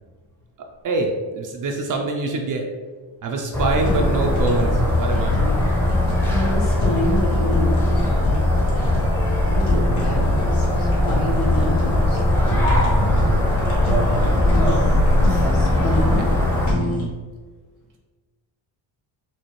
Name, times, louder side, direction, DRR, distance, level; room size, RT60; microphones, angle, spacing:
voice 1, 0.6-2.7 3.2-5.4, right 3 dB, 45° right, 2 dB, 0.5 m, -25 dB
sound 1, 3.5-16.7, left 1 dB, 5° left, 0.7 m, -19 dB
Fire, 3.7-17.0, left 1 dB, 75° left, 1.5 m, -29 dB
voice 2, 6.3-8.1 9.3-12.2 14.4-16.3, left 1 dB, 55° left, -2 dB, 0.9 m, -28 dB
4.2 x 2.4 x 3.1 m, 1.4 s
cardioid pair, 95°, 48 cm